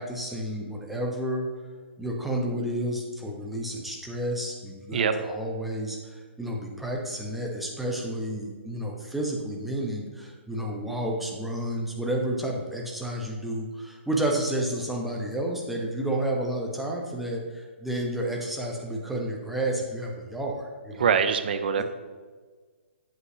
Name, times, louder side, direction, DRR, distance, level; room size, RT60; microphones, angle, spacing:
voice 1, 0.0-1.5 2.0-21.2 21.8-21.9, right 1 dB, ahead, -2 dB, 1.1 m, -31 dB
voice 2, 21.0-21.8, right 7 dB, 50° right, 9 dB, 0.6 m, -23 dB
8.0 x 7.7 x 2.9 m, 1.5 s
figure-of-eight pair, 125°, 7 cm